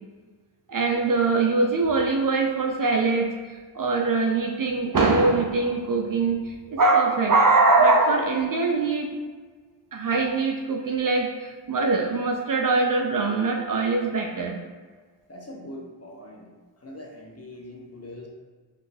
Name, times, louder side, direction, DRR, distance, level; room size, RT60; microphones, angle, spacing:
voice 1, 0.7-9.1 9.9-14.6, right 3 dB, 45° right, 2 dB, 0.4 m, -22 dB
voice 2, 15.3-16.5 16.8-18.3, left 1 dB, 30° left, -1 dB, 0.7 m, -42 dB
3.6 x 2.5 x 2.6 m, 1.5 s
cardioid pair, 40°, 49 cm